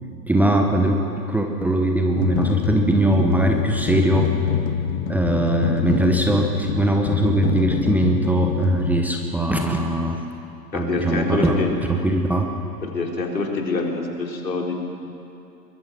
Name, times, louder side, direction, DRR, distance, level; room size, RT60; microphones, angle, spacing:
voice 1, 0.2-4.3 5.1-10.2 10.7-12.5, right 1 dB, 5° right, 3 dB, 1.0 m, -21 dB
sound 1, 2.2-9.1, left 8 dB, 35° left, 1.9 m, -25 dB
voice 2, 10.7-11.7 12.8-14.7, left 3 dB, 80° left, 1 dB, 3.9 m, -25 dB
23.5 x 21.0 x 6.1 m, 2.7 s
figure-of-eight pair, 120°, 50 cm